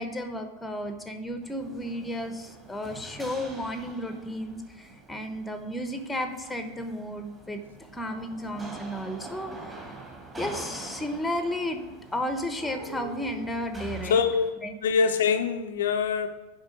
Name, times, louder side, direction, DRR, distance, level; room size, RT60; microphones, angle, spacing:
voice 1, 0.0-9.8 10.4-11.8 12.1-14.2 14.6-14.7, left 1 dB, 5° left, 7 dB, 1.0 m, -33 dB
sound 1, 1.4-14.5, right 2 dB, 15° right, 1.8 m, -44 dB
voice 2, 14.0-14.4 14.8-16.3, left 6 dB, 60° left, 6 dB, 0.6 m, -24 dB
7.4 x 5.7 x 6.3 m, 1.2 s
figure-of-eight pair, 90°, 0 cm